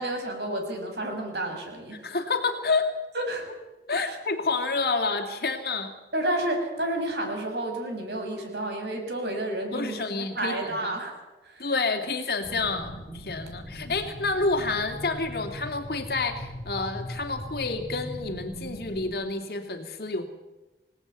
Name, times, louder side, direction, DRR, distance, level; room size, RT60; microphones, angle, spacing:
voice 1, 0.0-2.0 3.1-3.5 4.0-4.2 6.1-11.1 11.4-11.7 13.8-13.9, right 1 dB, 75° right, 3 dB, 6.8 m, -31 dB
voice 2, 2.0-2.9 3.9-5.9 9.7-10.9 11.6-20.3, left 3 dB, 60° left, 4 dB, 2.7 m, -29 dB
sound 1, 12.4-19.2, equal, 10° left, 2.5 m, -40 dB
27.0 x 18.0 x 9.4 m, 1.1 s
head